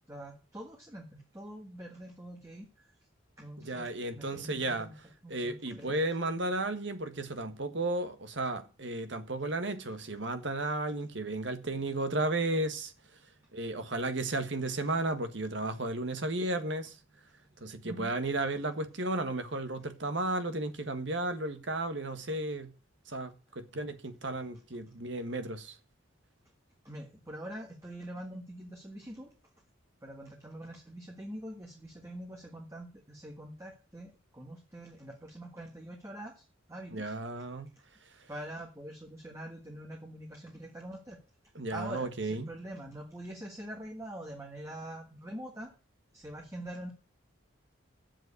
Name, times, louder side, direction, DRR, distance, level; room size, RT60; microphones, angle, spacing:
voice 1, 0.1-2.9 3.4-5.0 5.2-6.0 17.8-18.1 26.8-29.3 30.0-37.2 37.7-37.8 38.3-41.2 41.7-45.7 46.1-46.9, right 1 dB, 15° right, 1.5 m, -44 dB
voice 2, 3.6-4.9 5.3-12.9 13.5-16.9 17.6-22.7 23.1-25.7 36.9-37.7 41.5-42.5, right 2 dB, 60° right, 1.6 m, -34 dB
7.8 x 7.6 x 8.3 m
head